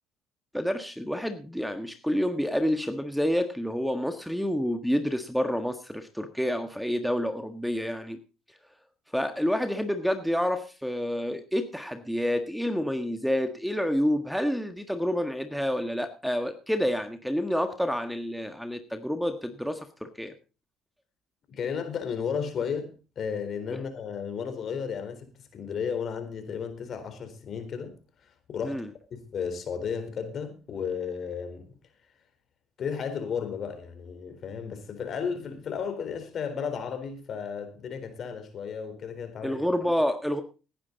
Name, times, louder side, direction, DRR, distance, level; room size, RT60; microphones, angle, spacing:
voice 1, 0.5-8.2 9.1-20.3 23.7-23.8 28.6-28.9 39.4-40.4, equal, ahead, 1.6 m, -28 dB
voice 2, 21.5-28.0 28.5-28.8 29.1-31.7 32.8-39.6, left 6 dB, 50° left, 4.0 m, -34 dB
17.5 x 10.0 x 4.1 m
supercardioid pair, 70°, 0 cm